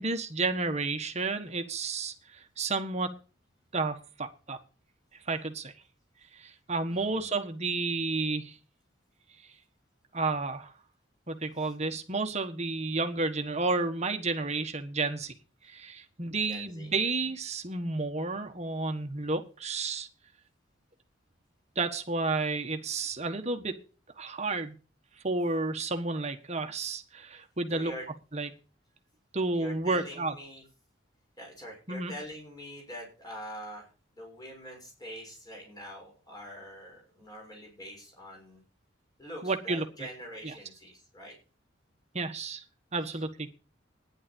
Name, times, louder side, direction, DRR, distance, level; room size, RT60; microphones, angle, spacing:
voice 1, 0.0-3.1 3.7-4.6 5.3-5.7 6.3-8.6 10.1-10.7 11.3-15.3 15.6-20.1 21.7-23.8 24.2-24.8 25.2-27.9 28.3-28.5 29.3-30.3 31.9-32.1 39.4-39.9 40.4-40.5 42.1-42.6 42.9-43.5, right 3 dB, 35° right, 6 dB, 1.5 m, -31 dB
voice 2, 6.9-7.3 16.4-16.9 17.2-17.3 27.7-28.1 29.5-30.6 31.4-38.6 39.2-41.3 43.1-43.2, equal, 20° left, 0 dB, 6.1 m, -44 dB
12.0 x 10.5 x 5.3 m, 0.35 s
head